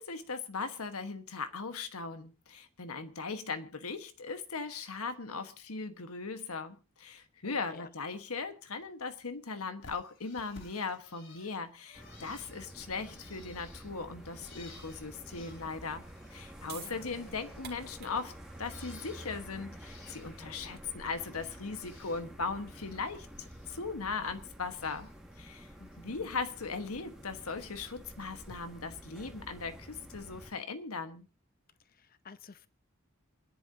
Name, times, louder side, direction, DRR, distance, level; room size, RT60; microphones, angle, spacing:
voice 1, 0.0-16.0 16.3-18.3 18.6-25.1 25.4-25.7 26.0-31.3, left 4 dB, 85° left, 1.4 m, -39 dB
voice 2, 7.4-7.9 16.6-17.1 25.8-26.3 32.0-32.7, left 4 dB, 40° left, 0.7 m, -51 dB
Bird, 9.8-16.6 16.9-19.4 19.7-20.6 20.9-22.2 22.6-23.8 24.1-25.2 25.6-26.0 27.3-27.4 28.4-28.6, left 3 dB, 55° left, 3.5 m, -57 dB
sound 1, 11.9-30.5, equal, ahead, 1.8 m, -50 dB
sound 2, 16.6-23.0, right 9 dB, 45° right, 2.4 m, -53 dB
27.5 x 10.5 x 2.8 m
head